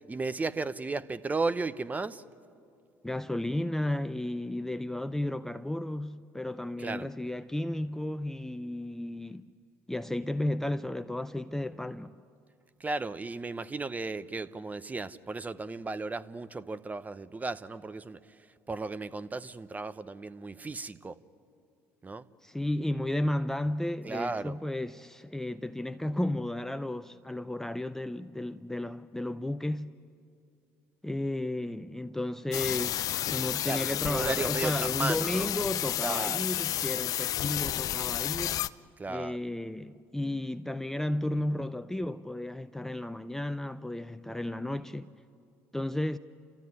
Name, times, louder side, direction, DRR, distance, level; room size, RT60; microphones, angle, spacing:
voice 1, 0.1-2.2 6.8-7.1 12.8-18.2 18.7-21.2 22.0-22.2 24.0-24.5 33.6-35.5 36.0-36.4 39.0-39.4, right 3 dB, 20° right, 0.8 m, -35 dB
voice 2, 3.0-9.5 9.9-12.2 22.4-29.9 31.0-38.7 39.1-45.1 45.7-46.2, left 1 dB, 5° left, 0.5 m, -33 dB
sound 1, 32.5-38.7, left 12 dB, 55° left, 0.5 m, -31 dB
30.0 x 14.5 x 9.7 m
supercardioid pair, 75°, 7 cm